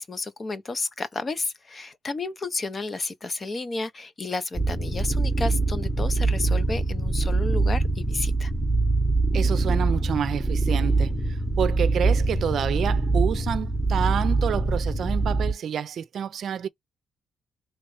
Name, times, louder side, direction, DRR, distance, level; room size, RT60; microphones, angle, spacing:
voice 1, 0.0-8.5, left 3 dB, 35° left, 0.7 m, -32 dB
sound 1, 4.5-15.5, right 3 dB, ahead, 1.0 m, -24 dB
voice 2, 9.3-11.1 11.6-16.7, right 8 dB, 60° right, 0.5 m, -28 dB
3.1 x 3.0 x 4.6 m
cardioid pair, 90°, 0 cm